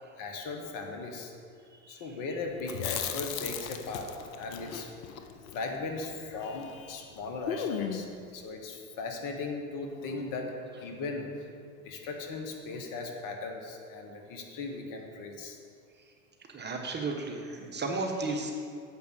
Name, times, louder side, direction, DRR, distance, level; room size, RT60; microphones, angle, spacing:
voice 1, 0.2-1.3 1.9-8.1 8.3-11.5 11.8-15.6, left 3 dB, 50° left, 3 dB, 1.4 m, -38 dB
voice 2, 1.7-2.1 16.5-18.6, right 3 dB, 25° right, 1 dB, 1.1 m, -34 dB
Chewing mastication, 2.6-6.8 7.0-7.1 7.5-8.2, left 8 dB, 75° left, 0.7 m, -37 dB
7.6 x 5.2 x 6.4 m, 2.3 s
hypercardioid pair, 85°, 41 cm